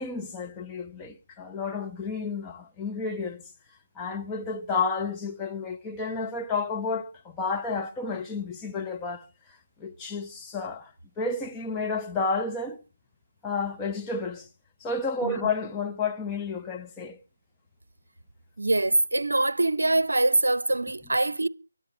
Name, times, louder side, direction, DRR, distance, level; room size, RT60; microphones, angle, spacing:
voice 1, 0.0-3.4 3.9-10.9 11.2-12.8 13.4-14.5 14.8-17.2, left 4 dB, 10° left, 0.9 m, -31 dB
voice 2, 18.6-21.5, right 2 dB, 80° right, 0.6 m, -24 dB
23.0 x 8.0 x 4.4 m
figure-of-eight pair, 155°, 0 cm